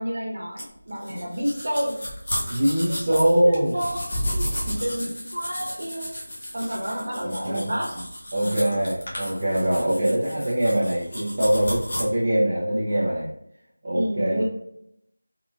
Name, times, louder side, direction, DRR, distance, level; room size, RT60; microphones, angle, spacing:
voice 1, 0.0-2.0 2.8-6.1 6.5-8.0 8.4-8.8 9.8-10.3 13.9-14.4, equal, 55° right, -2 dB, 1.0 m, -30 dB
Brushing teeth, 0.6-12.0, equal, 50° left, 1.0 m, -33 dB
voice 2, 2.5-3.7 7.2-7.7 8.3-13.3 13.8-14.4, right 1 dB, 35° right, -8 dB, 0.6 m, -23 dB
3.7 x 2.4 x 2.5 m, 0.75 s
figure-of-eight pair, 170°, 0 cm